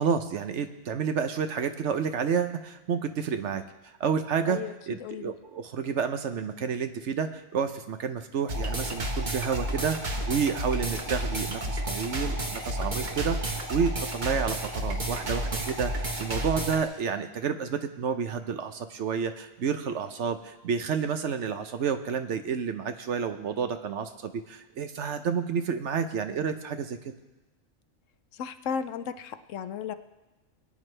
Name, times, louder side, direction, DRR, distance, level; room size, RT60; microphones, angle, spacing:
voice 1, 0.0-3.6 4.0-4.6 4.9-27.0, right 6 dB, 65° right, 8 dB, 1.0 m, -30 dB
voice 2, 5.0-5.3 28.3-29.9, left 7 dB, 75° left, 11 dB, 1.0 m, -34 dB
sound 1, 8.5-16.8, right 1 dB, 35° right, 1.2 m, -31 dB
21.0 x 9.3 x 3.3 m, 1.1 s
omnidirectional pair, 1.4 m